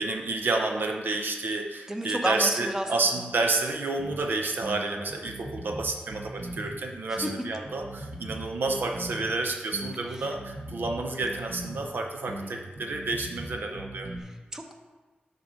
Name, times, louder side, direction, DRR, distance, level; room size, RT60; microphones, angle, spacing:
voice 1, 0.0-14.1, right 3 dB, 75° right, 3 dB, 0.6 m, -30 dB
voice 2, 1.9-3.1 7.1-7.3 10.2-10.3 14.2-14.7, equal, 15° right, 4 dB, 0.8 m, -32 dB
sound 1, 4.0-4.3 4.6-6.8 7.2-9.4 9.7-11.9 12.3-14.2, right 1 dB, 55° right, 1.2 m, -39 dB
7.0 x 4.1 x 6.3 m, 1.3 s
wide cardioid pair, 105°, 3 cm